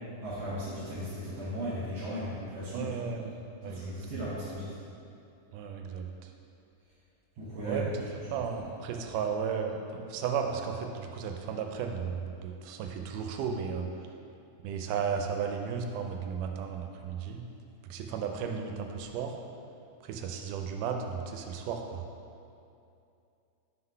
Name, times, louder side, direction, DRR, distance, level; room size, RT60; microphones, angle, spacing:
voice 1, 0.2-2.9 3.6-4.7 7.4-7.9, equal, 70° right, -10 dB, 2.4 m, -36 dB
voice 2, 2.7-3.8 5.5-6.3 7.6-7.9 8.3-13.9 14.6-17.4 17.8-19.3 20.0-22.0, right 6 dB, 90° right, 4 dB, 2.1 m, -34 dB
5.7 x 3.9 x 5.5 m, 2.6 s
omnidirectional pair, 3.6 m